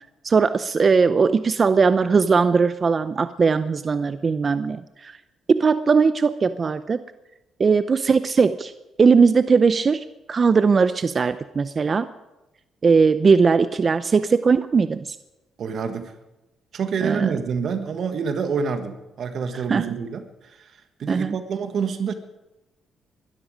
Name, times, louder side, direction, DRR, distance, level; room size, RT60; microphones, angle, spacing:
voice 1, 0.2-5.2 5.5-7.0 7.6-8.7 9.0-12.1 12.8-15.2 17.0-17.3 19.7-19.8 21.1-21.4, right 5 dB, 40° right, 13 dB, 0.6 m, -19 dB
voice 2, 15.6-16.1 16.7-20.7 21.0-22.1, right 6 dB, 60° right, 8 dB, 1.5 m, -27 dB
21.5 x 12.5 x 5.1 m, 1.0 s
cardioid pair, 90°, 0 cm